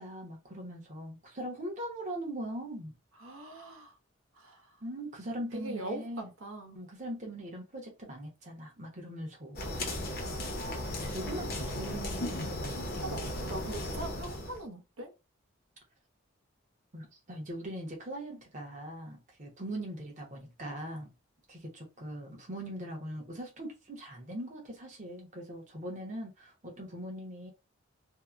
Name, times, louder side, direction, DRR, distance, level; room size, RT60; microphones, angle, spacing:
voice 1, 0.0-2.9 4.8-6.3 6.7-9.6 11.1-12.3 16.9-21.1 21.5-27.5, right 1 dB, 35° right, 0.8 m, -41 dB
voice 2, 3.2-3.9 4.4-4.7 5.5-6.8 10.1-10.8 12.8-15.1 19.7-20.0, right 1 dB, 80° right, 0.7 m, -42 dB
sound 1, 9.6-14.6, left 1 dB, 50° left, 0.6 m, -36 dB
2.8 x 2.0 x 2.3 m
head